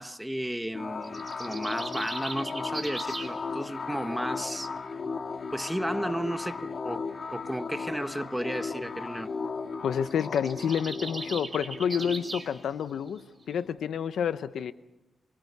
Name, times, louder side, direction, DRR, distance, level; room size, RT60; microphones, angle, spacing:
voice 1, 0.0-4.7 5.5-9.3, equal, 5° right, 1.1 m, -33 dB
sound 1, 0.7-14.0, left 4 dB, 50° left, 1.8 m, -37 dB
sound 2, 1.0-3.4 10.0-12.5, right 3 dB, 25° right, 4.5 m, -39 dB
voice 2, 9.8-14.7, left 8 dB, 80° left, 0.8 m, -29 dB
28.0 x 23.5 x 5.5 m
cardioid pair, 100°, 0 cm